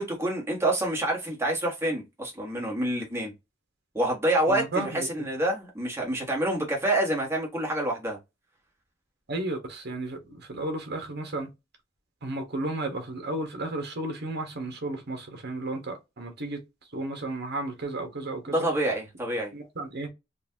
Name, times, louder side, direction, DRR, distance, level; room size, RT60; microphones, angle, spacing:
voice 1, 0.0-3.3 3.9-8.2 18.5-19.5, right 1 dB, 15° right, 1.4 m, -27 dB
voice 2, 4.5-5.3 9.3-11.5 12.2-16.6 16.9-18.7 19.5-20.1, right 2 dB, 55° right, 1.2 m, -33 dB
4.0 x 2.6 x 2.8 m
head